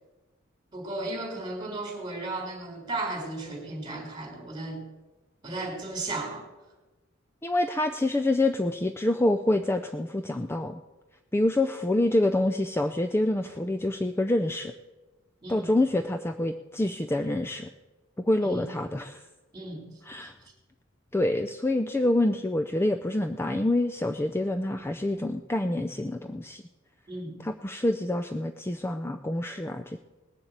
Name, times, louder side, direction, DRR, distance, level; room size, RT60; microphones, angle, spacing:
voice 1, 0.7-4.8 5.4-6.5 15.4-15.7 18.4-18.7 19.5-19.8 27.1-27.4, right 2 dB, 20° right, 1 dB, 3.9 m, -35 dB
voice 2, 7.4-10.8 11.3-14.7 15.5-17.7 18.2-19.2 20.1-20.3 21.1-26.6 27.4-30.0, left 1 dB, 10° left, 7 dB, 0.4 m, -27 dB
19.0 x 7.1 x 8.0 m, 1.2 s
head